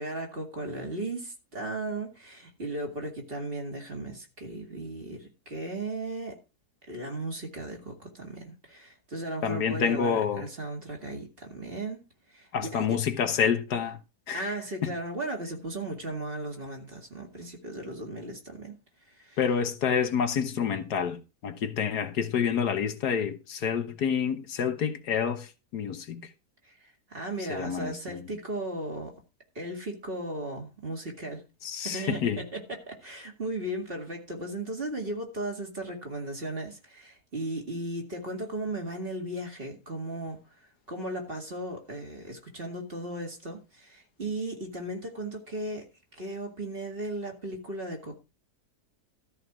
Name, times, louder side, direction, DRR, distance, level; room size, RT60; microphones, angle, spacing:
voice 1, 0.0-6.4 6.9-12.0 12.3-13.0 14.3-18.8 19.1-19.4 26.6-29.1 29.6-31.4 31.8-40.4 40.9-45.9 46.1-48.2, right 1 dB, 35° right, 2.4 m, -36 dB
voice 2, 9.4-10.5 12.5-14.0 14.3-14.5 14.8-14.9 19.4-25.5 25.7-26.2 27.5-28.2 31.6-32.4, left 7 dB, 85° left, 1.7 m, -28 dB
13.5 x 4.7 x 6.1 m
omnidirectional pair, 1.7 m